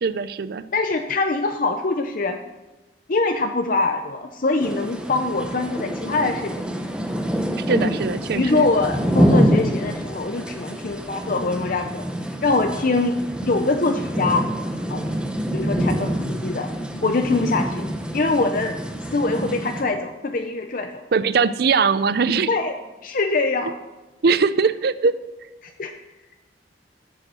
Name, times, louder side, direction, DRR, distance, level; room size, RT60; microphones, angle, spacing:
voice 1, 0.0-0.7 7.7-8.7 21.1-22.5 24.2-25.1, right 5 dB, 60° right, 15 dB, 0.4 m, -21 dB
voice 2, 0.7-2.4 3.1-6.6 7.7-8.0 8.3-12.0 12.4-14.5 14.9-15.1 15.5-16.7 17.0-17.9 18.1-21.0 22.4-22.7 23.0-23.8 25.6-25.9, left 3 dB, 50° left, 5 dB, 0.6 m, -23 dB
sound 1, 4.6-19.8, equal, 5° right, 1.0 m, -26 dB
13.0 x 7.6 x 6.2 m, 1.1 s
head